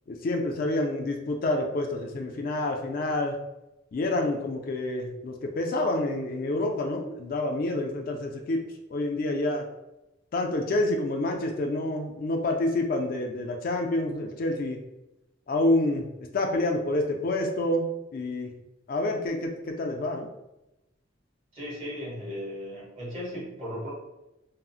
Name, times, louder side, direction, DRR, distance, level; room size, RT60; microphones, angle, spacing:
voice 1, 0.1-3.4 3.9-8.6 8.9-9.7 10.3-14.8 15.5-16.1 16.3-17.8 18.1-18.6 18.9-20.3, left 2 dB, 45° left, 2 dB, 0.3 m, -28 dB
voice 2, 21.5-23.9, equal, 35° right, -6 dB, 1.3 m, -36 dB
3.7 x 2.0 x 2.3 m, 0.94 s
head